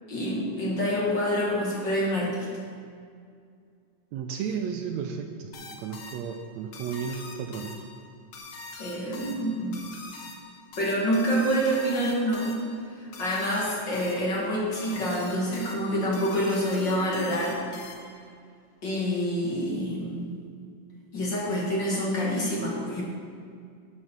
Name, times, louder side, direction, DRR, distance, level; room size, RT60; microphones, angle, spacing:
voice 1, 0.1-2.4 8.8-9.8 10.8-12.5 12.9-17.6 18.8-20.3 21.1-23.0, equal, 40° left, -4 dB, 2.2 m, -27 dB
voice 2, 4.1-7.8, right 6 dB, 80° right, 5 dB, 1.7 m, -33 dB
sound 1, 5.5-18.3, left 3 dB, 65° left, 2.0 m, -44 dB
10.5 x 6.5 x 6.1 m, 2.2 s
omnidirectional pair, 3.4 m